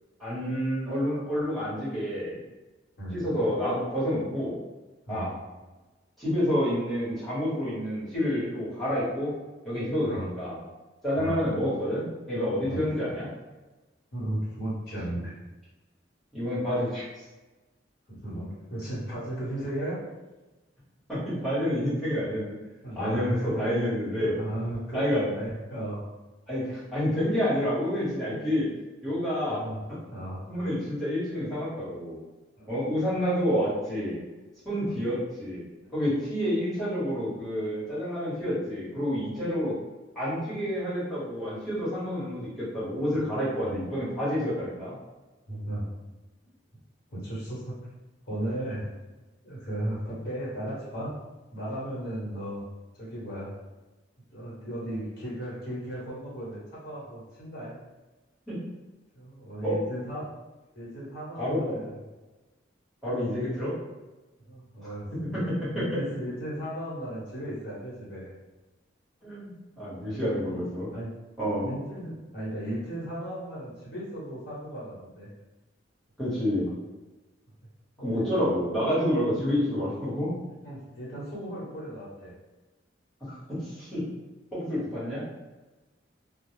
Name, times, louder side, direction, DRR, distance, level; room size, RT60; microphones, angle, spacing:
voice 1, 0.2-2.4 3.1-4.6 5.1-5.3 6.2-9.3 9.6-10.6 11.0-13.3 16.3-17.0 21.1-22.6 23.0-24.3 24.9-25.2 26.5-28.7 29.0-29.6 30.5-32.2 32.7-34.2 34.6-35.6 35.9-39.7 40.1-44.9 58.5-58.6 59.6-59.7 61.4-61.8 63.0-63.7 69.2-69.5 69.8-70.9 71.4-71.7 76.2-76.7 78.0-80.3 83.2-84.0 84.5-85.2, equal, ahead, -12 dB, 1.2 m, -28 dB
voice 2, 14.1-15.3 18.1-20.0 22.8-23.6 24.2-26.0 27.6-27.7 28.3-28.4 29.5-29.8 30.1-30.4 32.6-32.8 34.8-35.0 35.8-35.9 39.4-39.6 43.1-43.2 43.5-43.8 45.5-45.9 47.1-47.8 48.3-48.9 49.4-51.1 51.5-52.6 52.9-53.5 54.3-57.8 59.1-60.3 60.7-62.0 64.5-65.4 65.7-68.3 70.1-71.1 71.6-75.3 78.0-78.3 79.2-79.3 80.6-82.3, right 1 dB, 55° left, -7 dB, 1.1 m, -36 dB
2.2 x 2.0 x 3.1 m, 1.1 s
head